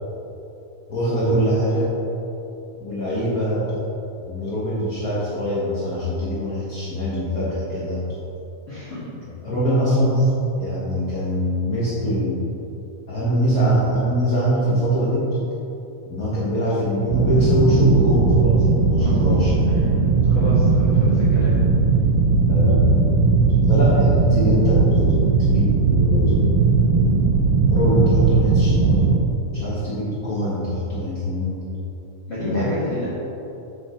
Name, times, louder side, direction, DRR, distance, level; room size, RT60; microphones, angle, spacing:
voice 1, 0.9-1.9 2.8-3.8 4.2-8.0 9.4-10.3 10.6-12.4 13.1-15.4 16.1-19.6 22.5-23.2 23.7-26.7 27.7-29.2 29.4-31.7 32.4-32.7, equal, 90° left, -8 dB, 0.8 m, -22 dB
voice 2, 8.7-9.0 19.0-21.5 32.3-33.1, left 1 dB, 45° left, -13 dB, 2.2 m, -30 dB
sound 1, 17.1-29.2, right 4 dB, 90° right, 2.3 m, -18 dB
6.3 x 6.2 x 4.4 m, 2.9 s
omnidirectional pair, 3.5 m